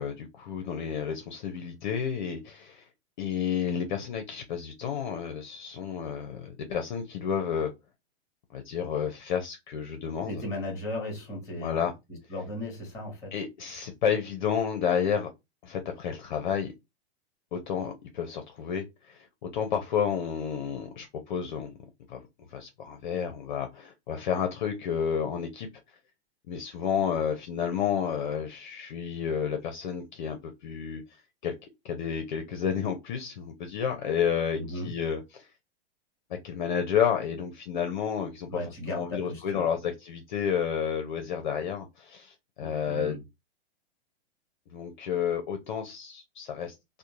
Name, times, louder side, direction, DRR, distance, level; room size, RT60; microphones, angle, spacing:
voice 1, 0.0-2.9 3.2-7.7 8.5-10.4 11.6-11.9 13.3-15.3 15.6-16.7 17.5-21.7 22.1-22.2 22.5-25.7 26.5-31.0 31.4-31.5 31.8-35.5 36.4-38.5 38.9-43.2 44.7-46.7, left 7 dB, 45° left, 0.5 m, -31 dB
voice 2, 10.3-11.8 12.3-13.3 34.6-34.9 38.5-39.7 42.6-43.2, left 1 dB, 10° left, 1.0 m, -36 dB
2.6 x 2.0 x 2.9 m
supercardioid pair, 170°, 33 cm